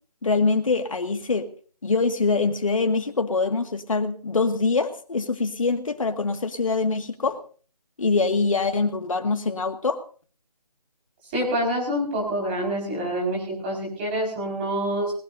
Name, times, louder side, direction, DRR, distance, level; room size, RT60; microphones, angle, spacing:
voice 1, 0.2-1.5 1.8-7.4 8.0-10.0, left 4 dB, 55° left, 7 dB, 1.9 m, -24 dB
voice 2, 11.3-15.1, equal, 15° right, -2 dB, 5.1 m, -26 dB
19.5 x 19.5 x 2.6 m, 0.41 s
figure-of-eight pair, 160°, 21 cm